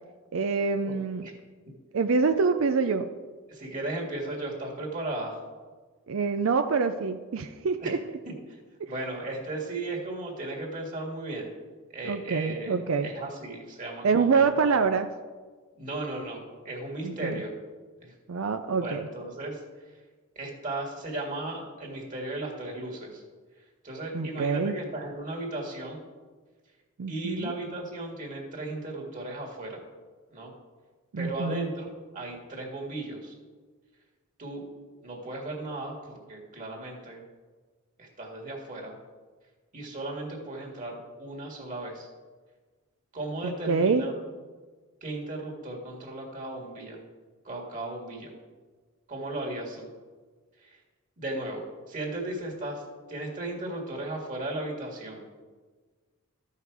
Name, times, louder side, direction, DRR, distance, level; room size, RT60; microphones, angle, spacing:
voice 1, 0.3-1.3 1.9-3.1 6.1-8.0 8.8-8.9 12.1-13.1 14.0-15.1 17.0-17.4 18.3-19.1 24.1-24.8 27.0-27.5 31.1-31.7 43.4-44.1, right 5 dB, 70° right, 8 dB, 0.5 m, -26 dB
voice 2, 3.5-5.4 7.8-8.0 8.3-8.6 8.9-11.5 11.9-14.9 15.8-17.5 18.0-18.1 18.8-19.6 20.4-23.2 23.8-26.0 27.1-29.8 30.3-30.5 31.2-33.3 34.4-34.6 35.0-37.2 38.0-39.0 39.7-42.1 43.1-44.1 45.0-47.0 47.4-48.3 49.1-49.9 50.6-50.8 51.2-52.8 53.1-55.2, right 2 dB, 40° right, -1 dB, 1.9 m, -36 dB
13.5 x 5.6 x 4.7 m, 1.4 s
head